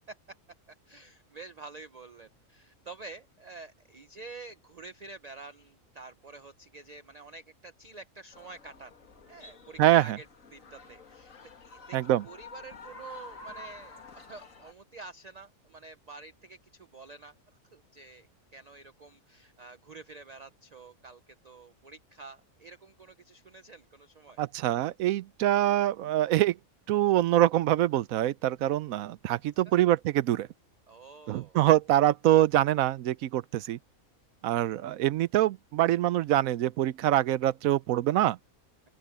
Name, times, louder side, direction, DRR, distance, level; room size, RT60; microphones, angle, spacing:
voice 1, 0.9-8.9 9.3-10.3 10.5-11.3 11.6-17.3 17.7-18.3 18.5-24.4 29.7-29.8 30.9-31.6, right 3 dB, 40° right, 0.7 m, -48 dB
sound 1, 8.3-14.7, left 3 dB, 70° left, 2.3 m, -49 dB
voice 2, 9.8-10.2 11.9-12.2 24.4-26.6 26.9-30.5 31.3-33.8 34.4-38.4, right 13 dB, 80° right, 1.0 m, -25 dB
open air
omnidirectional pair, 1.5 m